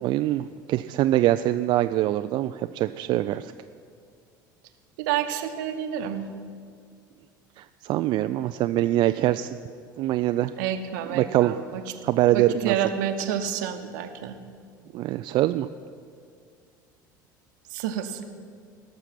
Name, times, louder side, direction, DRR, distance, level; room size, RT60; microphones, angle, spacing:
voice 1, 0.0-3.5 7.6-9.5 10.0-10.5 11.1-11.5 12.0-12.7 14.9-15.7, right 14 dB, 45° right, 10 dB, 0.3 m, -23 dB
voice 2, 5.0-6.3 10.6-11.9 12.3-14.4 17.7-18.2, right 9 dB, 65° right, 8 dB, 1.0 m, -29 dB
17.5 x 6.8 x 6.0 m, 2.2 s
figure-of-eight pair, 65°, 11 cm